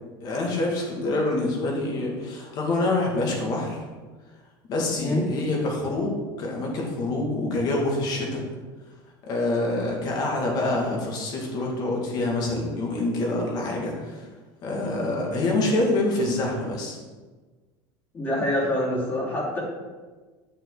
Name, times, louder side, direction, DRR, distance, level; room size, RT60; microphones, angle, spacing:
voice 1, 0.2-3.8 4.7-8.4 9.2-14.2 14.6-17.0, left 2 dB, 40° left, -1 dB, 2.2 m, -26 dB
voice 2, 18.1-19.6, left 1 dB, 20° left, -5 dB, 3.0 m, -25 dB
11.0 x 6.6 x 4.0 m, 1.4 s
cardioid pair, 165°, 11 cm